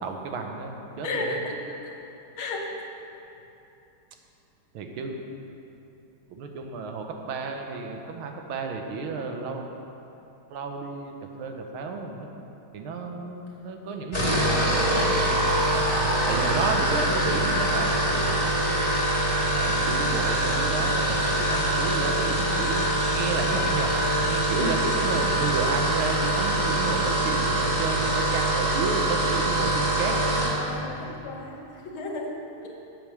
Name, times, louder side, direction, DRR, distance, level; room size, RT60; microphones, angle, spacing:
voice 1, 0.0-1.4 4.7-5.1 6.3-9.6 10.5-12.3 12.7-15.9 16.3-18.9 19.4-23.9 24.2-30.4 31.1-31.2, right 4 dB, 80° right, 3 dB, 1.7 m, -32 dB
voice 2, 1.0-1.6 1.8-1.9 2.4-2.7 24.5-24.8 30.0-31.6 31.9-32.4 32.6-32.7, left 2 dB, 75° left, 0 dB, 1.9 m, -33 dB
sound 1, 14.0-30.6, right 1 dB, 20° left, 2.0 m, -24 dB
8.4 x 7.0 x 6.3 m, 2.9 s
omnidirectional pair, 2.3 m